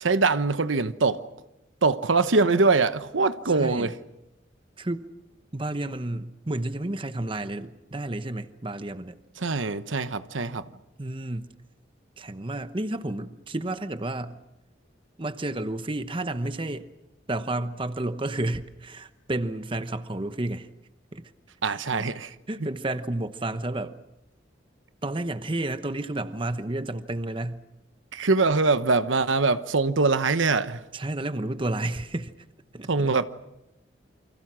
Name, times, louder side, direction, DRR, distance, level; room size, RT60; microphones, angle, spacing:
voice 1, 0.0-1.2 1.8-3.9 9.4-10.7 21.6-22.3 22.6-22.7 28.1-30.8 32.9-33.2, right 3 dB, 85° right, 1.0 m, -23 dB
voice 2, 3.5-3.9 4.8-5.1 5.5-9.2 11.0-11.5 12.2-14.4 15.2-16.8 17.3-20.7 21.1-21.3 21.7-22.1 22.5-24.0 25.0-27.6 30.9-32.3 32.7-33.1, right 2 dB, 25° right, 0.9 m, -31 dB
29.0 x 25.0 x 6.2 m
head